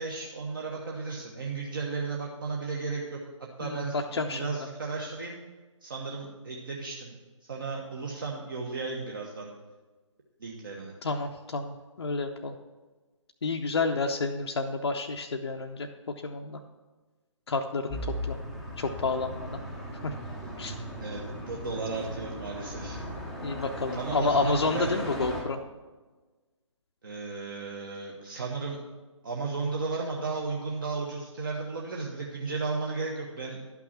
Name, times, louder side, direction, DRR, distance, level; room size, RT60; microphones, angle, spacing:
voice 1, 0.0-5.4 5.8-7.2 7.4-9.5 10.4-10.9 21.0-23.0 24.0-24.9 27.0-28.8 29.2-33.6, right 4 dB, 40° right, -1 dB, 1.1 m, -34 dB
voice 2, 3.6-4.4 11.0-12.6 13.4-15.9 16.2-16.6 17.5-18.0 18.3-18.4 18.8-19.5 20.0-20.1 20.6-20.7 23.4-25.6, left 3 dB, 55° left, 3 dB, 0.6 m, -30 dB
sound 1, 17.9-25.4, equal, ahead, 0.7 m, -37 dB
11.5 x 6.0 x 5.7 m, 1.3 s
figure-of-eight pair, 145°, 17 cm